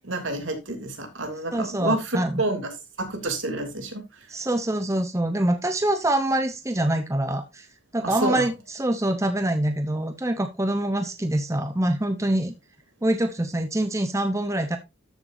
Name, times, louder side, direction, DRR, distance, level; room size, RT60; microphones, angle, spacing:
voice 1, 0.0-2.7 3.0-4.3 8.0-8.5, right 2 dB, 75° right, 4 dB, 3.0 m, -29 dB
voice 2, 1.5-2.4 4.3-7.7 7.9-12.5 13.0-14.8, right 1 dB, 15° right, 8 dB, 0.8 m, -25 dB
13.5 x 7.1 x 2.6 m, 0.23 s
head